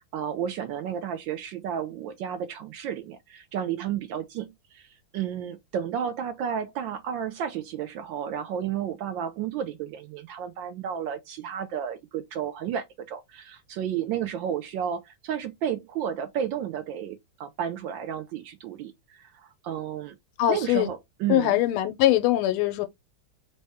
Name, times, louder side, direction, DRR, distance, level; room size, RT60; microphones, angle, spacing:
voice 1, 0.0-20.2 20.5-21.6, right 9 dB, 75° right, 1.1 m, -32 dB
voice 2, 20.4-20.9 21.3-22.9, left 13 dB, 85° left, 1.5 m, -22 dB
4.1 x 2.1 x 3.4 m
omnidirectional pair, 2.4 m